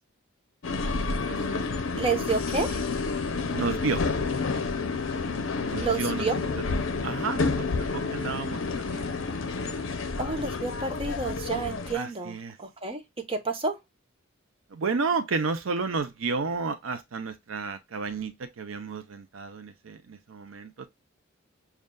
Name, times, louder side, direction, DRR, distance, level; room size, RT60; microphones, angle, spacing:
sound 1, 0.6-11.9, left 4 dB, 65° left, 0.6 m, -30 dB
voice 1, 0.8-1.6 1.9-2.9 3.5-4.0 5.6-6.3 6.6-6.7 7.0-9.2 11.9-12.6 14.7-20.9, right 4 dB, 90° right, 0.6 m, -32 dB
voice 2, 2.0-2.8 5.8-6.3 10.2-13.0 13.3-13.8, right 4 dB, 30° right, 0.8 m, -30 dB
6.4 x 2.4 x 2.2 m
head